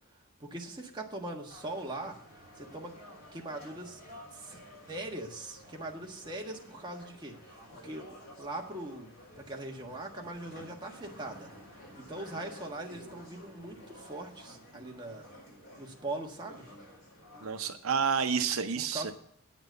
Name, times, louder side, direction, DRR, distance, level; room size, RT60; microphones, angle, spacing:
voice 1, 0.4-2.2 2.6-3.0 3.3-4.0 4.3-4.6 4.9-8.1 8.4-9.1 9.4-11.5 12.0-15.3 15.8-16.7 18.8-19.1, right 2 dB, 20° right, 0 dB, 1.5 m, -41 dB
sound 1, 1.5-17.7, equal, 45° left, 4.6 m, -52 dB
voice 2, 17.4-19.1, right 6 dB, 85° right, 8 dB, 0.7 m, -29 dB
9.1 x 6.0 x 7.9 m, 0.65 s
head